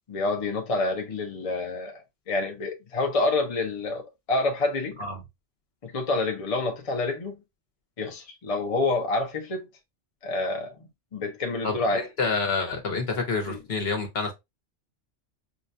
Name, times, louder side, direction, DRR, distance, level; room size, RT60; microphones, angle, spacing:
voice 1, 0.1-5.0 5.8-7.4 8.0-9.7 10.2-12.0 13.5-13.6, left 2 dB, 35° left, 0.7 m, -28 dB
voice 2, 11.6-14.3, left 4 dB, 60° left, 1.1 m, -28 dB
5.0 x 2.2 x 2.5 m
omnidirectional pair, 1.2 m